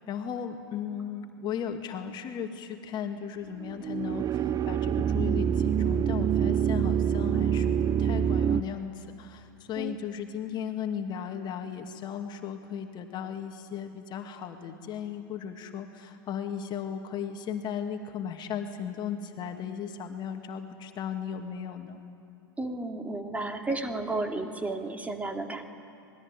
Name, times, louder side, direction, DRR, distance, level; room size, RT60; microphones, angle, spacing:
voice 1, 0.0-22.0, left 8 dB, 40° left, 5 dB, 2.3 m, -36 dB
sound 1, 3.6-8.6, right 8 dB, 30° right, 0.7 m, -26 dB
voice 2, 22.6-25.7, right 2 dB, 10° right, 4 dB, 2.7 m, -33 dB
26.0 x 21.0 x 9.9 m, 2.7 s
figure-of-eight pair, 85°, 12 cm